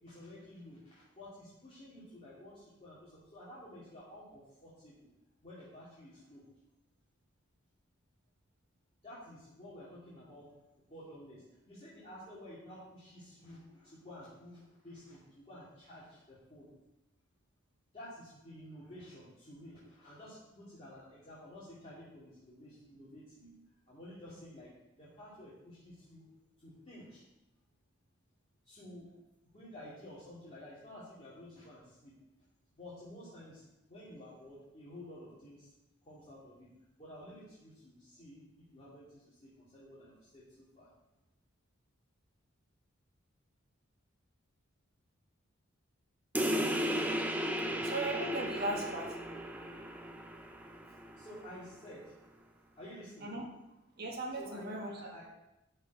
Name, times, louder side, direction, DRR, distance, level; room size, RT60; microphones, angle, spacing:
voice 1, 0.0-4.9 5.4-6.4 9.0-10.5 10.9-16.7 17.9-23.5 23.9-24.7 25.0-26.2 26.6-27.2 28.6-29.2 29.5-32.1 32.8-35.7 36.0-36.7 37.0-40.9 51.2-52.1 52.8-53.3 54.3-55.3, left 1 dB, 30° left, -10 dB, 2.5 m, -52 dB
sound 1, 46.3-51.4, equal, 10° right, 0.6 m, -35 dB
voice 2, 47.8-49.1 53.2-53.4 54.0-54.9, right 2 dB, 50° right, 0 dB, 1.7 m, -37 dB
12.5 x 4.5 x 4.7 m, 0.93 s
head